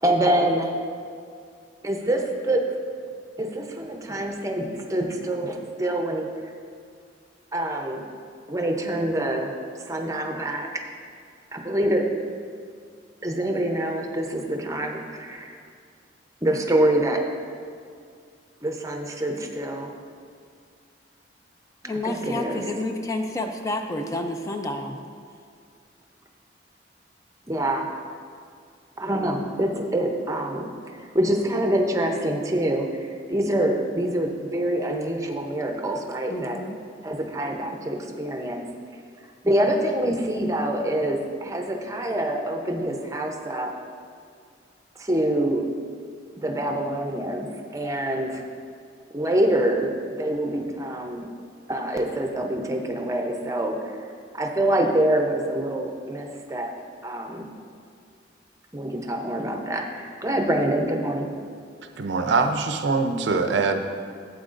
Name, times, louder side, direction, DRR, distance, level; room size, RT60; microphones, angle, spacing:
voice 1, 0.0-0.7 1.8-2.6 3.4-6.3 7.5-8.1 8.5-9.5 9.9-10.8 11.5-12.1 13.2-15.6 16.4-17.2 18.6-19.9 22.0-22.6 27.5-27.9 29.0-36.6 37.0-38.6 39.4-43.7 45.0-45.6 46.3-48.4 49.1-51.3 51.7-54.0 54.3-56.7 57.0-57.5 58.7-61.3, right 1 dB, 15° right, 2 dB, 0.7 m, -25 dB
voice 2, 21.8-25.0 36.3-36.8, left 2 dB, 15° left, 4 dB, 0.4 m, -29 dB
voice 3, 62.0-63.8, right 4 dB, 70° right, 6 dB, 0.5 m, -23 dB
11.5 x 8.1 x 2.5 m, 2.2 s
head